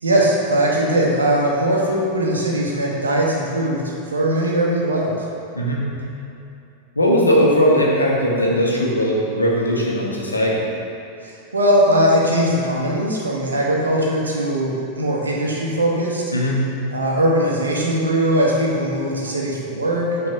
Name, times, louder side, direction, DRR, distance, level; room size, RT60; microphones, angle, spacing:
voice 1, 0.0-3.8 4.1-5.2 11.2-16.2 16.9-20.1, right 1 dB, 75° right, -3 dB, 1.0 m, -20 dB
voice 2, 7.0-10.6 16.3-16.6, equal, 80° left, -3 dB, 1.0 m, -18 dB
6.0 x 3.3 x 5.5 m, 2.6 s
figure-of-eight pair, 90°, 0 cm